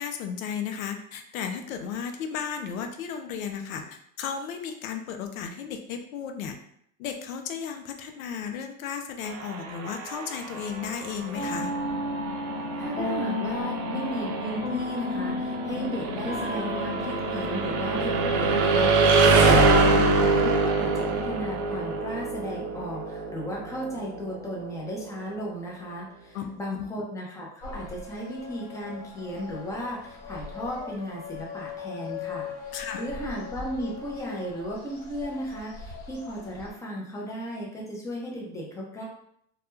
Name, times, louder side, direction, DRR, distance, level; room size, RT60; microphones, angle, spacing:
voice 1, 0.0-6.6 7.0-11.7 26.3-26.8 32.7-33.0, left 7 dB, 90° left, 5 dB, 0.5 m, -34 dB
sound 1, 9.2-25.1, right 3 dB, 50° right, 0.5 m, -25 dB
sound 2, 11.3-20.4, left 2 dB, 70° left, 1.0 m, -32 dB
voice 2, 12.6-39.1, equal, 10° left, -3 dB, 0.5 m, -35 dB
sound 3, 27.6-36.7, left 5 dB, 50° left, 1.3 m, -40 dB
2.2 x 2.1 x 3.0 m, 0.70 s
supercardioid pair, 125°, 40 cm